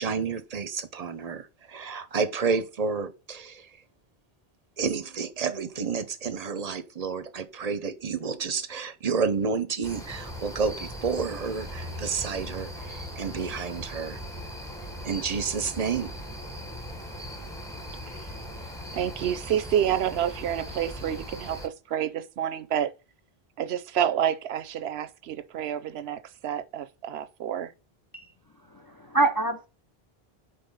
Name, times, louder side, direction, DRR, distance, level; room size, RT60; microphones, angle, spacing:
voice 1, 0.0-3.7 4.8-14.2 15.0-16.1, right 5 dB, 45° right, 0.7 m, -30 dB
sound 1, 9.8-21.7, equal, 5° left, 1.0 m, -39 dB
voice 2, 18.9-22.9 23.6-27.7, right 10 dB, 80° right, 0.8 m, -29 dB
voice 3, 28.7-29.7, right 3 dB, 30° left, 0.4 m, -26 dB
5.3 x 4.1 x 5.3 m
omnidirectional pair, 1.1 m